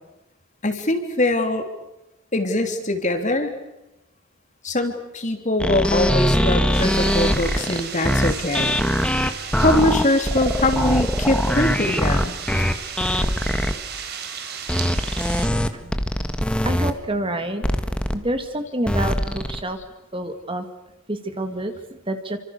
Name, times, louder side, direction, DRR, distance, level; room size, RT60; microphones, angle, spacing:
voice 1, 0.6-1.7 2.3-3.5 4.6-8.8 9.6-12.3, left 1 dB, 35° left, 6 dB, 3.3 m, -22 dB
sound 1, 5.6-13.7 14.7-16.9 17.6-18.2 18.9-19.6, equal, 5° left, 1.6 m, -22 dB
sound 2, 6.7-15.5, right 7 dB, 50° right, 4.3 m, -34 dB
voice 2, 16.6-17.6 18.1-19.8 20.1-20.7 21.1-21.7 22.1-22.4, right 1 dB, 25° right, 7 dB, 2.1 m, -27 dB
29.5 x 25.5 x 6.8 m, 0.96 s
head